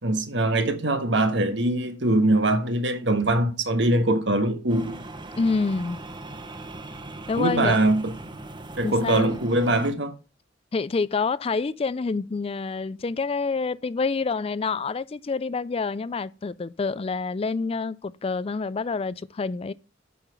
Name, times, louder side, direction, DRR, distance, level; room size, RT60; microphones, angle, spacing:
voice 1, 0.0-5.0 7.4-8.1 8.8-10.1, right 1 dB, 65° right, 1.5 m, -22 dB
sound 1, 4.7-9.9, right 2 dB, 25° right, 1.0 m, -40 dB
voice 2, 5.4-6.0 7.3-7.8 8.8-9.4 10.7-19.7, left 4 dB, 30° left, 0.4 m, -27 dB
8.4 x 5.8 x 6.8 m
head